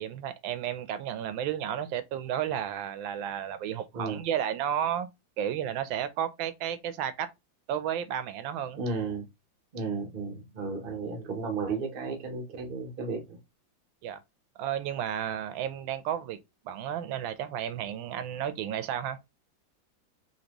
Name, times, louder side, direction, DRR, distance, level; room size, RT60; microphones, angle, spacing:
voice 1, 0.0-5.1 5.4-7.3 7.7-8.8 14.0-14.2 14.6-16.4 16.6-19.2, right 10 dB, 85° right, 1.4 m, -32 dB
voice 2, 8.8-9.3 9.7-13.4, right 4 dB, 50° right, 0.6 m, -33 dB
4.3 x 2.8 x 2.9 m
omnidirectional pair, 2.1 m